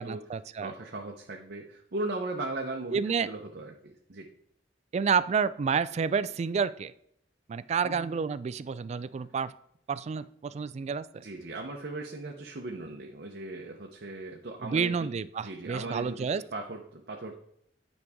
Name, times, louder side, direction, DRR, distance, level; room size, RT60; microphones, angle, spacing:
voice 1, 0.0-0.7 2.9-3.3 4.9-6.9 7.5-9.5 9.9-11.2 14.6-16.4, right 6 dB, 40° right, 16 dB, 0.3 m, -29 dB
voice 2, 0.6-4.3 7.8-8.1 11.2-15.1 15.4-16.3 16.5-17.4, right 2 dB, 60° right, 1 dB, 0.8 m, -38 dB
9.6 x 5.3 x 3.6 m, 0.72 s
head